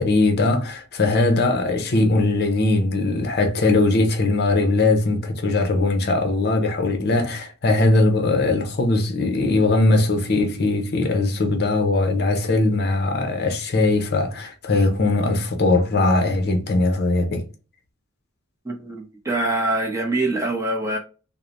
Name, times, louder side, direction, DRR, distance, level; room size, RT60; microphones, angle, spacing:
voice 1, 0.0-17.4, left 2 dB, 50° left, 0.6 m, -20 dB
voice 2, 18.6-21.0, right 2 dB, 15° right, 0.6 m, -24 dB
3.1 x 2.1 x 2.4 m
head